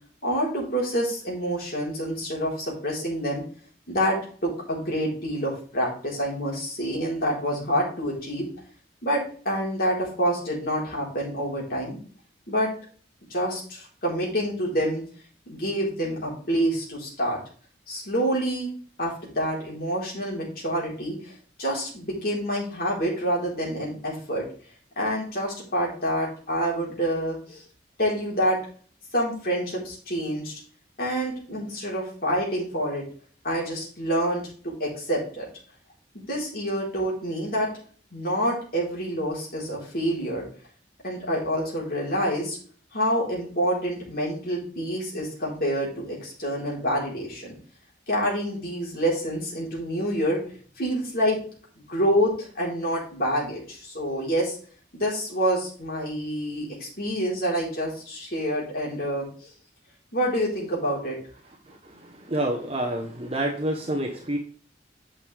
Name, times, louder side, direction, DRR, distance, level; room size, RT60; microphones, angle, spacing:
voice 1, 0.2-3.4 3.9-8.5 9.0-12.0 12.5-12.7 13.3-15.0 15.5-17.4 17.9-18.7 19.0-21.3 21.6-24.5 25.0-27.6 28.0-28.6 29.1-30.6 31.0-33.0 33.4-35.5 36.1-37.7 38.1-40.4 41.0-42.6 42.9-47.5 48.1-50.4 50.8-51.4 51.9-54.6 54.9-59.5 60.1-61.2, equal, 55° left, -4 dB, 4.1 m, -27 dB
voice 2, 62.3-64.4, right 1 dB, 35° right, 1 dB, 1.1 m, -27 dB
9.4 x 6.4 x 3.5 m, 0.43 s
head